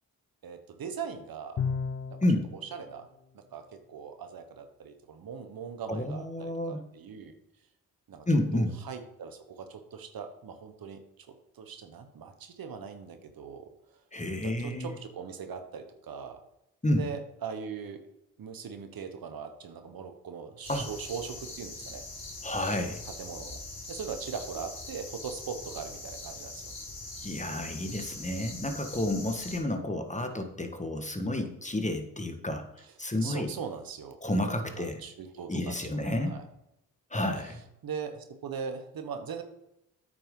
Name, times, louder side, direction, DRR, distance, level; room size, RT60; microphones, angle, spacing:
voice 1, 0.4-1.7 2.2-3.1 3.3-7.3 8.1-11.0 11.5-13.7 14.4-16.4 16.9-18.0 18.4-22.0 23.0-23.6 23.9-26.7 27.9-28.1 32.8-34.3 34.6-36.4 37.3-39.4, right 6 dB, 70° right, 7 dB, 1.1 m, -40 dB
Bowed string instrument, 1.6-2.5, left 6 dB, 40° left, 0.5 m, -32 dB
voice 2, 5.9-6.8 8.3-8.7 14.1-14.9 16.8-17.0 20.7-20.8 22.4-23.0 27.2-32.6 33.0-33.5 34.2-35.0 35.5-36.4 37.1-37.6, left 1 dB, 20° left, 6 dB, 1.5 m, -30 dB
sound 1, 20.6-29.6, left 2 dB, 75° left, 2.9 m, -42 dB
8.7 x 6.5 x 3.8 m, 0.82 s
supercardioid pair, 45°, 36 cm